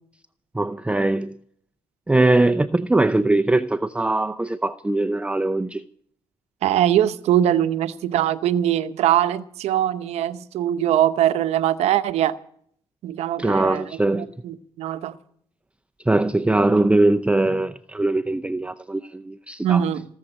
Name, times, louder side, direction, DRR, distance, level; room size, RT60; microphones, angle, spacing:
voice 1, 0.5-1.4 2.1-5.8 13.4-14.3 16.1-19.8, right 2 dB, 10° right, 0.6 m, -21 dB
voice 2, 6.6-12.4 13.0-15.2 19.6-20.1, right 11 dB, 85° right, 0.8 m, -22 dB
18.5 x 7.3 x 9.9 m
cardioid pair, 70°, 11 cm